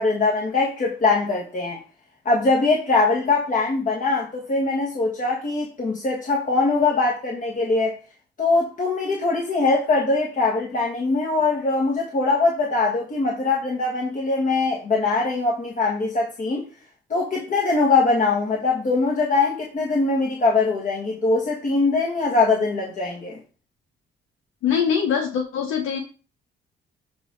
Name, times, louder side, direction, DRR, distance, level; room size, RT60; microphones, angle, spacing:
voice 1, 0.0-1.8 2.2-7.9 8.4-16.6 17.1-23.4, left 3 dB, 40° left, 1.5 m, -22 dB
voice 2, 24.6-26.0, left 7 dB, 85° left, 1.0 m, -23 dB
7.8 x 3.5 x 3.9 m
cardioid pair, 90°, 20 cm